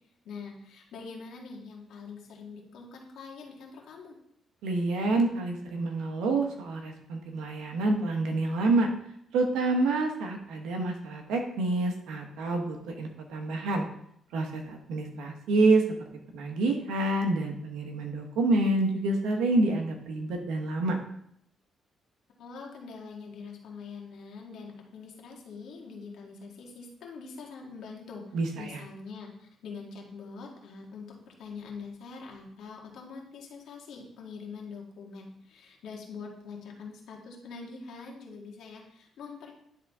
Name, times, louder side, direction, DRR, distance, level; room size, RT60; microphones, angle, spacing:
voice 1, 0.2-4.2 22.4-39.5, left 4 dB, 75° left, 0 dB, 1.7 m, -44 dB
voice 2, 4.6-8.9 9.3-13.8 14.3-16.0 16.3-21.0 28.3-28.8, right 2 dB, 90° right, 3 dB, 1.1 m, -27 dB
10.5 x 3.8 x 3.6 m, 0.70 s
cardioid pair, 90°, 0 cm